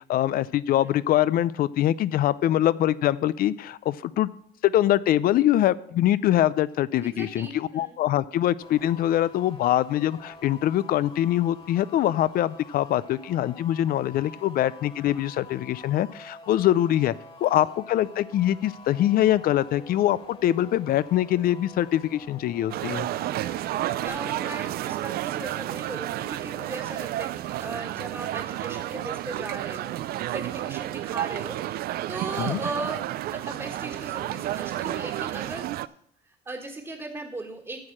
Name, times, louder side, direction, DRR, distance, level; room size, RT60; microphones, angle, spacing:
voice 1, 0.1-4.3 4.6-17.1 17.4-23.1 32.4-32.6, left 12 dB, 60° left, 18 dB, 0.5 m, -23 dB
voice 2, 7.0-8.0 14.2-14.5 17.4-17.5 24.0-29.9 30.3-35.6 36.4-37.9, right 2 dB, 20° right, 0 dB, 1.6 m, -37 dB
sound 1, 8.6-24.1, left 3 dB, 35° left, 2.0 m, -47 dB
sound 2, 22.7-35.9, right 14 dB, 65° right, 0.4 m, -31 dB
9.4 x 6.5 x 7.4 m, 0.70 s
cardioid pair, 110°, 17 cm